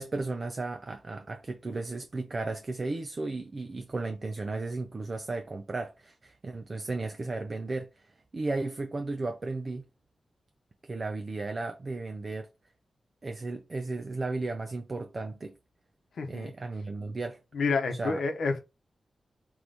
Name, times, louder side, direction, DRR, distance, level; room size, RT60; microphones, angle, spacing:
voice 1, 0.0-9.8 10.8-12.5 13.2-15.6 16.3-17.4 17.9-18.2, right 3 dB, 35° right, 0.4 m, -35 dB
voice 2, 16.2-16.5 17.5-18.6, left 4 dB, 85° left, 0.8 m, -29 dB
3.9 x 3.0 x 3.4 m
wide cardioid pair, 155°, 0 cm